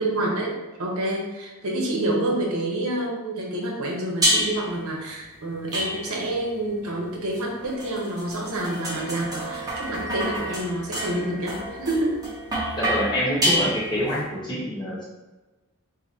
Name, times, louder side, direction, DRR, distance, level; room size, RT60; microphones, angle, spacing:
voice 1, 0.0-12.2, right 1 dB, 80° right, -1 dB, 0.8 m, -28 dB
sound 1, 4.2-4.8 5.7-6.4 7.3-14.2, equal, 15° right, 0.7 m, -28 dB
voice 2, 12.8-15.0, equal, 20° left, -6 dB, 0.9 m, -26 dB
2.7 x 2.6 x 4.1 m, 1.1 s
head